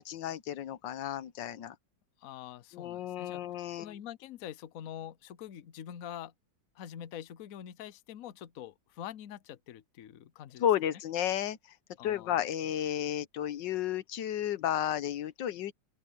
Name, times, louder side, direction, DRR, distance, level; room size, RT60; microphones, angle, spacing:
voice 1, 0.0-1.7 2.7-4.0 10.6-11.6 12.0-15.7, left 10 dB, 90° left, 1.6 m, -32 dB
voice 2, 2.2-3.4 3.8-6.3 6.7-10.7 12.0-12.4 12.6-12.7, left 10 dB, 60° left, 1.1 m, -45 dB
open air
omnidirectional pair, 1.9 m